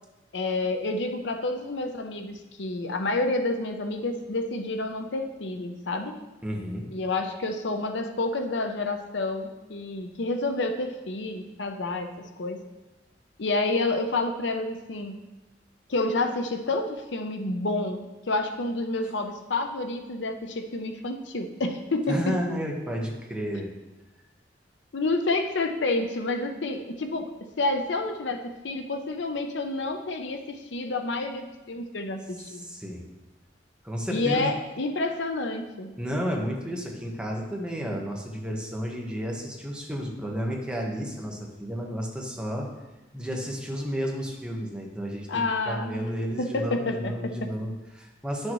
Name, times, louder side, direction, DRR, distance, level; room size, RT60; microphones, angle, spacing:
voice 1, 0.3-6.2 6.9-12.6 13.4-15.2 15.9-22.4 24.9-27.3 27.6-32.7 34.1-35.9 45.3-46.1 46.4-47.1, left 2 dB, 75° left, 6 dB, 0.7 m, -29 dB
voice 2, 6.4-6.9 22.1-23.7 32.4-33.1 33.8-34.5 36.0-42.7 43.1-48.5, equal, 5° right, -1 dB, 1.2 m, -32 dB
10.5 x 6.5 x 3.1 m, 1.1 s
head